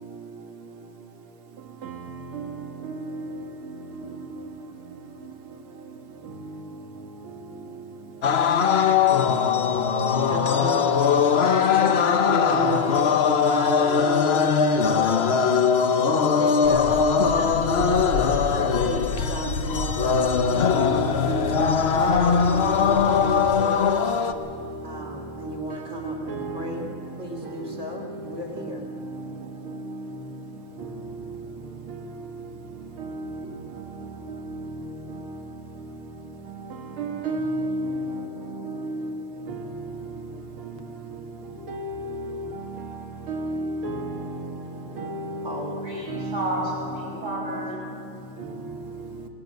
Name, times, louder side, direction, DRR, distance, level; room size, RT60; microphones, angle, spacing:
sound 1, 8.2-24.3, left 6 dB, 60° left, 0.6 m, -21 dB
voice 1, 10.2-11.0 11.5-15.3 16.2-21.5 22.1-24.2 24.8-26.9 27.2-28.8 45.4-45.8, left 1 dB, 35° right, 3.0 m, -33 dB
sound 2, 16.6-23.6, left 3 dB, 80° left, 2.0 m, -32 dB
voice 2, 37.0-37.9 41.7-41.8 43.3-44.1, right 2 dB, 90° right, 2.4 m, -29 dB
voice 3, 45.8-48.0, right 1 dB, 70° right, 7.9 m, -32 dB
19.5 x 14.5 x 9.3 m
omnidirectional pair, 2.3 m